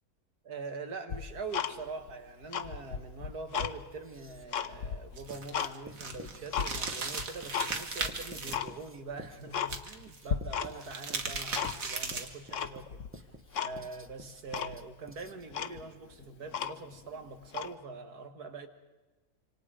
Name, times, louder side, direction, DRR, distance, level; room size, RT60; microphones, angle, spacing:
voice 1, 0.4-13.0 13.6-18.7, right 4 dB, 75° right, 7 dB, 2.3 m, -43 dB
Tick-tock, 1.1-2.1 2.4-3.7 4.2-5.7 6.1-6.7 7.2-7.7 8.0-8.1 8.5-8.7 9.1-9.2 9.5-10.0 10.3-10.9 11.2-12.0 12.5-13.1 13.5-13.7 14.1-14.2 14.5-14.8 15.2-15.3 15.5-17.0 17.5-17.7, left 8 dB, 55° left, 1.1 m, -35 dB
Writing, 3.9-4.6 5.3-15.6, right 1 dB, 10° right, 1.0 m, -51 dB
sound 1, 5.1-8.6 9.6-10.2 10.7-12.4, right 4 dB, 60° right, 2.2 m, -37 dB
26.5 x 25.5 x 5.1 m, 1.1 s
omnidirectional pair, 1.7 m